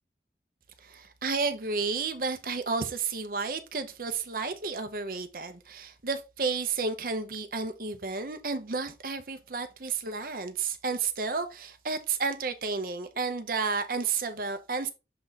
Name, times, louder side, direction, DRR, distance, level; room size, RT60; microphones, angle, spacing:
voice 1, 0.8-14.9, right 4 dB, 55° right, 0.8 m, -32 dB
6.8 x 3.7 x 4.0 m
head